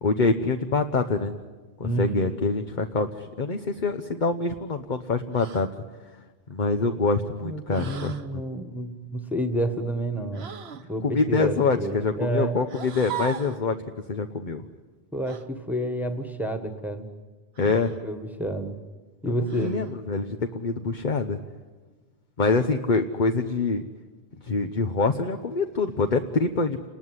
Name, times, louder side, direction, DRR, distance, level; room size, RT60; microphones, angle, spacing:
voice 1, 0.0-1.3 1.8-5.7 6.5-8.4 11.0-13.7 14.1-14.6 17.6-17.9 19.2-21.4 22.4-23.8 24.4-26.9, left 4 dB, 50° left, 6 dB, 1.1 m, -25 dB
voice 2, 1.8-2.2 7.4-10.5 10.9-12.6 15.1-17.1 18.0-18.8 19.2-19.7, right 1 dB, ahead, 5 dB, 1.6 m, -29 dB
sound 1, 5.3-5.7 7.7-8.3 10.3-10.9 12.7-13.6 15.3-15.5 17.5-18.0 19.4-19.9, right 8 dB, 80° right, 1.3 m, -38 dB
29.0 x 20.0 x 9.8 m, 1.3 s
omnidirectional pair, 1.1 m